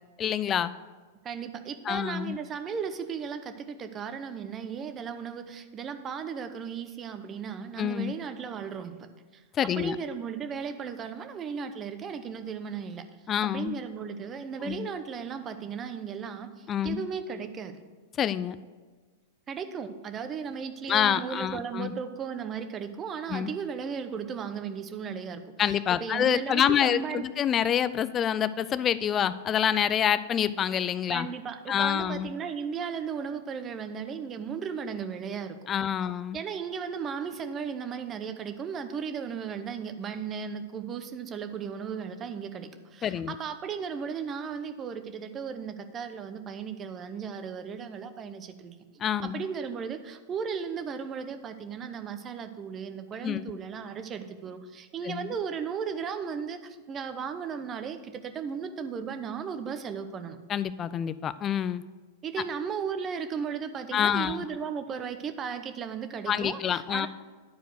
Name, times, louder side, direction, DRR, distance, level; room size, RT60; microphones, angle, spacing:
voice 1, 0.2-0.7 1.9-2.4 7.8-8.1 9.5-10.0 13.3-13.7 14.6-14.9 16.7-17.0 18.2-18.6 20.9-21.9 23.3-23.5 25.6-31.3 31.7-32.3 35.7-36.4 43.0-43.3 49.0-49.4 53.2-53.4 55.0-55.3 60.5-61.8 63.9-64.4 66.3-67.1, left 9 dB, 30° left, 15 dB, 0.4 m, -27 dB
voice 2, 1.2-9.1 9.3-13.0 13.4-17.8 19.5-27.2 31.1-35.6 36.3-48.8 49.2-60.4 62.2-67.1, right 6 dB, 30° right, 9 dB, 0.8 m, -36 dB
10.0 x 4.6 x 6.3 m, 1.4 s
hypercardioid pair, 105°, 0 cm